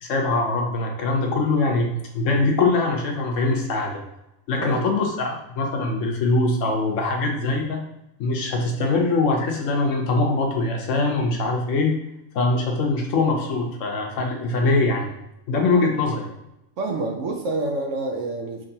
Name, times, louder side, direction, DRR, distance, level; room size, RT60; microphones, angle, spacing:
voice 1, 0.0-4.0 4.5-7.8 8.2-11.9 12.3-15.1 15.5-16.3, left 3 dB, 65° left, 1 dB, 1.0 m, -22 dB
voice 2, 16.8-18.7, right 2 dB, 70° right, 2 dB, 0.9 m, -28 dB
3.6 x 3.1 x 2.7 m, 0.87 s
omnidirectional pair, 1.5 m